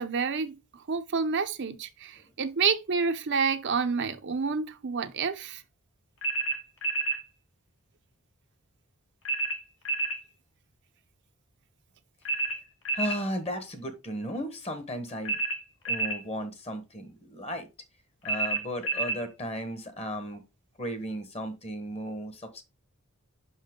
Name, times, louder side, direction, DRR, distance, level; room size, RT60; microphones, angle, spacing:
voice 1, 0.0-5.6, right 5 dB, 55° right, 0.6 m, -29 dB
sound 1, 6.2-7.2 9.2-10.2 12.2-13.2 15.2-16.2 18.2-19.2, right 3 dB, 60° left, 1.6 m, -29 dB
voice 2, 12.9-15.4 15.9-17.7 18.2-20.4 20.8-22.6, equal, 30° left, 1.2 m, -35 dB
5.8 x 5.5 x 3.6 m
head